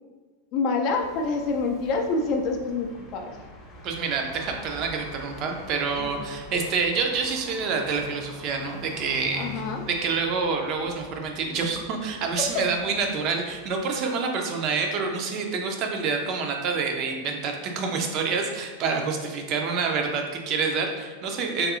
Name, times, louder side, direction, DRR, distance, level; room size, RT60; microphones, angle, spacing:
voice 1, 0.5-3.4 6.0-6.1 9.3-9.8 12.5-12.6, left 3 dB, 40° left, 3 dB, 0.3 m, -27 dB
sound 1, 0.8-14.0, equal, 25° left, 0.7 m, -44 dB
voice 2, 3.8-21.7, right 5 dB, 40° right, 3 dB, 0.4 m, -27 dB
3.5 x 2.6 x 2.4 m, 1.4 s
figure-of-eight pair, 90°, 0 cm